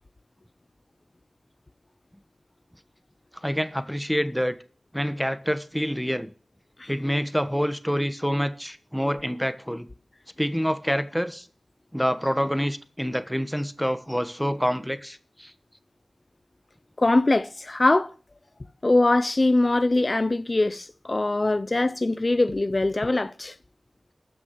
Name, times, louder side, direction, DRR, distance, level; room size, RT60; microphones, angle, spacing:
voice 1, 3.4-4.6 4.9-6.3 6.9-9.9 10.4-11.5 11.9-15.5, equal, ahead, 1.2 m, -27 dB
voice 2, 17.0-18.1 18.8-23.5, left 2 dB, 45° left, 0.6 m, -22 dB
13.5 x 6.1 x 8.2 m
wide cardioid pair, 70°, 0 cm